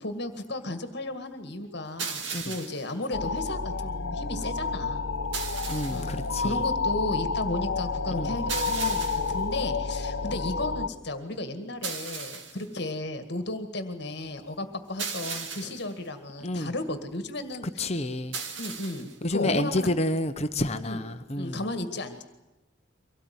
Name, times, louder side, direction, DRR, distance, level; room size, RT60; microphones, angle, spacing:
voice 1, 0.0-5.0 5.9-17.9 18.6-19.9 20.8-21.0 21.4-22.2, left 1 dB, 55° left, 9 dB, 1.9 m, -34 dB
sound 1, 2.0-2.9 5.3-6.2 8.5-9.4 11.8-12.7 15.0-15.9 18.3-19.2, right 5 dB, 65° right, 2.1 m, -36 dB
sound 2, 3.1-10.9, left 4 dB, 75° left, 1.1 m, -30 dB
voice 2, 5.7-6.6 8.1-8.3 16.4-16.7 17.8-18.4 19.2-21.6, left 1 dB, 30° left, 8 dB, 1.0 m, -29 dB
24.5 x 18.0 x 9.4 m, 1.0 s
head